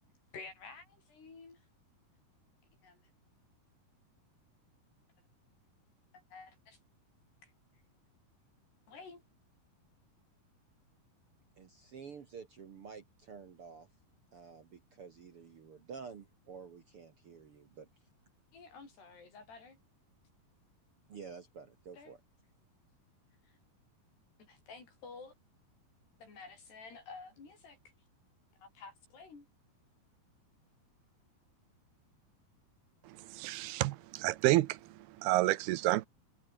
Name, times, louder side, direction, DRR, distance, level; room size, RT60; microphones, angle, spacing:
voice 1, 0.3-1.6 2.8-3.0 6.1-6.8 7.4-7.5 8.9-9.2 18.5-19.8 21.9-22.1 23.4-23.6 24.5-25.3 26.2-27.8 28.6-29.5, left 4 dB, 85° left, 9.9 m, -51 dB
voice 2, 11.6-13.9 14.3-17.9 21.1-22.2, right 6 dB, 50° right, 1.7 m, -50 dB
voice 3, 33.1-34.8 35.2-36.1, right 17 dB, 80° right, 2.7 m, -29 dB
omnidirectional pair, 4.6 m